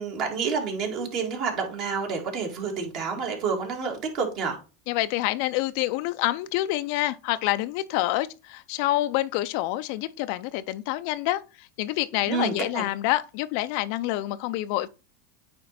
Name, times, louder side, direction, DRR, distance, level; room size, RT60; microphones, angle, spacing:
voice 1, 0.0-4.6 12.3-12.8, right 5 dB, 55° right, 2.0 m, -29 dB
voice 2, 4.9-14.9, left 16 dB, 65° left, 0.3 m, -27 dB
8.7 x 3.1 x 4.1 m
hypercardioid pair, 110°, 0 cm